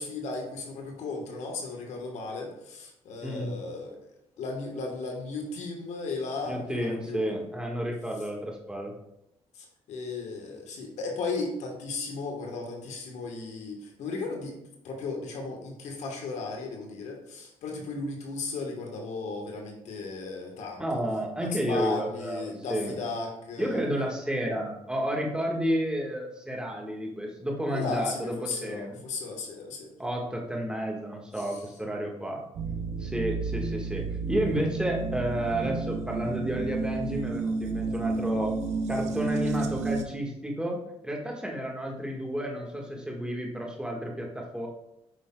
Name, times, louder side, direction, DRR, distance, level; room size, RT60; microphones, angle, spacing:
voice 1, 0.0-4.0 4.4-7.3 9.5-14.6 14.8-21.0 21.4-23.8 27.7-29.9 31.4-31.5, left 3 dB, 80° left, 1 dB, 1.2 m, -35 dB
voice 2, 3.2-3.6 6.4-8.9 20.8-22.9 23.6-29.0 30.0-32.4 33.0-38.5 38.9-40.8 41.0-44.7, equal, 5° right, 0 dB, 1.5 m, -31 dB
sound 1, 32.5-40.0, right 4 dB, 75° right, 0.6 m, -31 dB
7.8 x 5.4 x 2.2 m, 0.82 s
cardioid pair, 75°, 12 cm